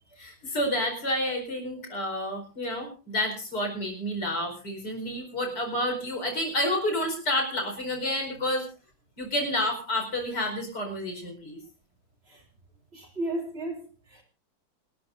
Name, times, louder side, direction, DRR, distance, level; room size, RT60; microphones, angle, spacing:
voice 1, 0.2-8.7 9.2-11.6, left 1 dB, 60° left, 5.2 m, -29 dB
voice 2, 12.9-14.2, right 1 dB, 30° right, 3.0 m, -34 dB
28.0 x 13.0 x 2.6 m
omnidirectional pair, 2.1 m